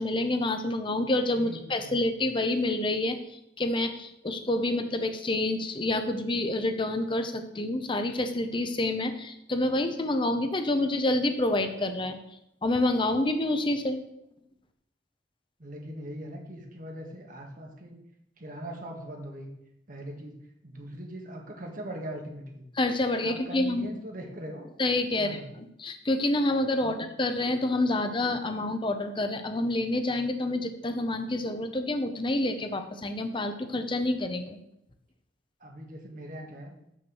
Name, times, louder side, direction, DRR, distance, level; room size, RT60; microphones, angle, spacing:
voice 1, 0.0-3.2 3.6-12.2 12.6-14.0 22.8-23.9 24.8-34.6, left 2 dB, 25° left, 7 dB, 0.8 m, -28 dB
voice 2, 1.4-1.9 15.6-17.9 18.4-19.5 19.9-20.3 20.6-22.7 23.2-24.7 25.2-25.5 26.8-27.0 35.6-36.7, right 1 dB, 50° right, 1 dB, 1.6 m, -40 dB
6.4 x 5.9 x 6.1 m, 0.81 s
head